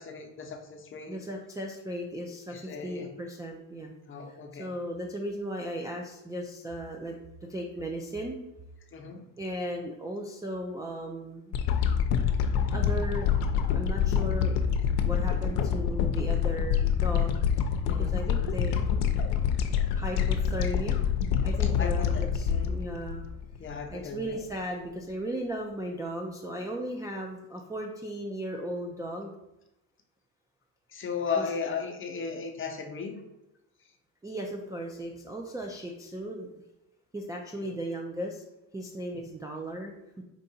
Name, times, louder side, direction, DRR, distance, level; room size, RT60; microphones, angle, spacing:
voice 1, 0.0-1.2 2.5-3.1 4.1-4.7 8.9-9.2 17.9-18.2 21.6-22.8 23.6-24.4 30.9-33.2 37.5-37.7 39.1-39.2, left 5 dB, 30° left, 3 dB, 0.8 m, -36 dB
voice 2, 1.1-3.9 4.6-7.1 7.5-8.4 9.4-11.5 12.7-13.3 13.7-14.6 15.0-17.4 18.1-18.7 19.9-21.0 21.4-23.2 23.9-29.3 31.4-31.5 34.2-36.5 37.1-38.4 38.7-39.9, right 1 dB, 10° right, 0 dB, 0.3 m, -36 dB
sound 1, 11.5-23.9 24.3-24.4, left 7 dB, 65° left, 0.7 m, -26 dB
4.6 x 2.6 x 4.2 m, 0.92 s
supercardioid pair, 95°, 42 cm